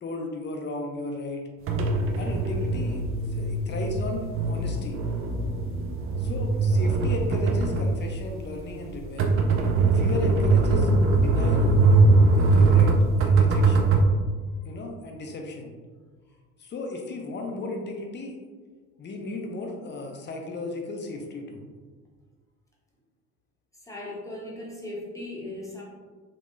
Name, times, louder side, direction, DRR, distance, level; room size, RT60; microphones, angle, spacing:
voice 1, 0.0-1.4 2.2-3.0 3.3-5.0 6.2-9.2 9.9-11.8 12.3-12.9 13.2-13.9 14.6-15.7 16.6-18.4 19.0-21.6, left 2 dB, 25° left, 2 dB, 0.6 m, -35 dB
sound 1, 1.7-14.1, right 3 dB, 30° right, 0.5 m, -21 dB
voice 2, 23.8-25.8, left 1 dB, 5° left, -4 dB, 0.9 m, -37 dB
3.6 x 2.9 x 2.5 m, 1.5 s
hypercardioid pair, 60°, 43 cm